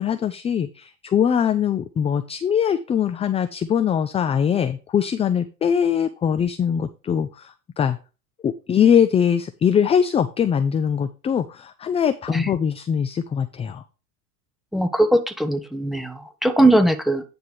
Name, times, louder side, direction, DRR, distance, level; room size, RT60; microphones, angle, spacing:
voice 1, 0.0-8.0 8.4-13.8, left 8 dB, 15° left, 10 dB, 0.3 m, -22 dB
voice 2, 14.7-17.2, right 1 dB, ahead, 8 dB, 1.1 m, -20 dB
9.5 x 3.4 x 6.1 m, 0.32 s
hypercardioid pair, 90°, 45 cm